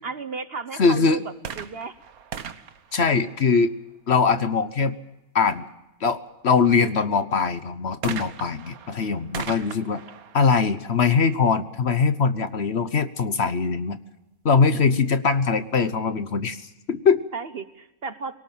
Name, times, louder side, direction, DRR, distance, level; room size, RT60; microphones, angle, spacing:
voice 1, 0.0-2.0 17.3-18.4, right 4 dB, 45° right, 12 dB, 1.1 m, -34 dB
voice 2, 0.8-1.2 2.9-3.7 4.1-4.9 5.3-5.7 6.0-10.0 10.3-14.0 14.4-16.6 16.9-17.2, left 5 dB, 50° left, 12 dB, 1.2 m, -21 dB
sound 1, 1.4-4.0 8.0-11.7 12.5-12.6, right 7 dB, 80° right, 1.6 m, -39 dB
23.0 x 18.0 x 7.3 m, 0.96 s
omnidirectional pair, 1.5 m